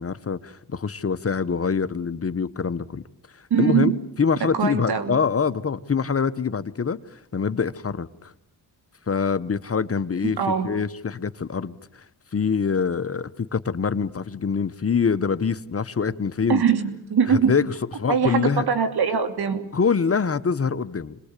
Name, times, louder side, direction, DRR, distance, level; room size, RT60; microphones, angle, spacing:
voice 1, 0.0-3.0 3.6-8.3 9.1-12.0 12.3-16.6 17.3-17.6 18.0-18.6 19.7-21.2, left 6 dB, 35° left, 1.1 m, -25 dB
voice 2, 3.5-4.0 4.5-5.2 10.2-10.8 16.5-17.5 18.1-19.6, right 7 dB, 75° right, 2.9 m, -22 dB
27.0 x 21.0 x 8.4 m
cardioid pair, 80°, 39 cm